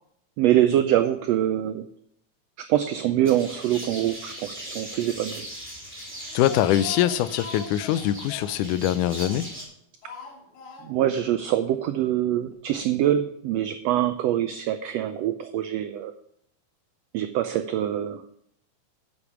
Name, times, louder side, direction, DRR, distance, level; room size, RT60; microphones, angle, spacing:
voice 1, 0.4-1.9 2.6-5.5 10.8-16.1 17.1-18.2, right 12 dB, 90° right, 9 dB, 1.4 m, -24 dB
sound 1, 3.2-9.6, equal, 5° right, 2.9 m, -39 dB
Speech, 6.1-9.6 10.0-11.2 11.4-11.5 11.8-11.9, left 6 dB, 75° left, 2.7 m, -41 dB
voice 2, 6.3-9.5, left 12 dB, 90° left, 16 dB, 2.1 m, -23 dB
9.7 x 7.0 x 6.0 m, 0.70 s
omnidirectional pair, 3.5 m